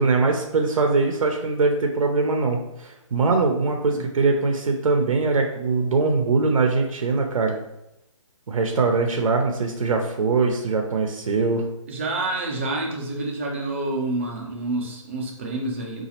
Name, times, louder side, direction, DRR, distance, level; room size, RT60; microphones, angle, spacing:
voice 1, 0.0-7.6 8.5-11.6, right 4 dB, 85° right, 3 dB, 0.5 m, -22 dB
voice 2, 11.9-16.0, right 2 dB, 25° right, 0 dB, 0.4 m, -28 dB
4.0 x 2.4 x 2.8 m, 0.86 s
hypercardioid pair, 165°, 17 cm